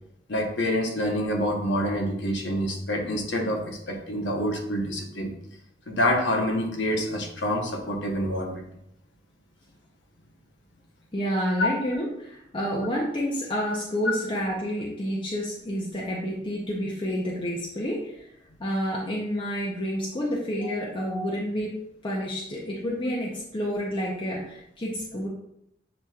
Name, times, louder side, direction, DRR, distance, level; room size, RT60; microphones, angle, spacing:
voice 1, 0.3-5.3 5.9-8.6 11.6-11.7 20.6-20.9, left 1 dB, 80° left, 2 dB, 0.9 m, -27 dB
voice 2, 11.1-18.3 18.6-25.3, equal, 30° left, -3 dB, 0.6 m, -29 dB
7.6 x 2.9 x 2.4 m, 0.78 s
head